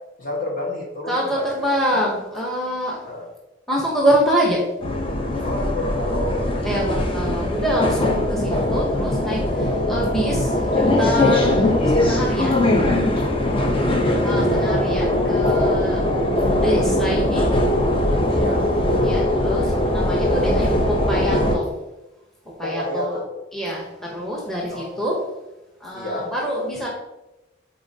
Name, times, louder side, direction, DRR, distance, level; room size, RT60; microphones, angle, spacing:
voice 1, 0.2-1.5 1.9-2.0 3.0-3.2 5.4-6.9 13.4-14.4 18.3-18.7 22.6-23.3 24.7-25.0 25.9-26.3, left 1 dB, 45° left, -2 dB, 1.5 m, -29 dB
voice 2, 1.1-3.0 3.7-4.6 6.6-12.6 14.2-16.0 16.6-17.4 19.0-21.7 22.6-23.2 23.5-25.2 25.8-26.9, equal, ahead, -2 dB, 0.9 m, -25 dB
sound 1, 4.8-21.6, left 1 dB, 30° left, 0.7 m, -20 dB
8.6 x 4.0 x 2.8 m, 0.98 s
head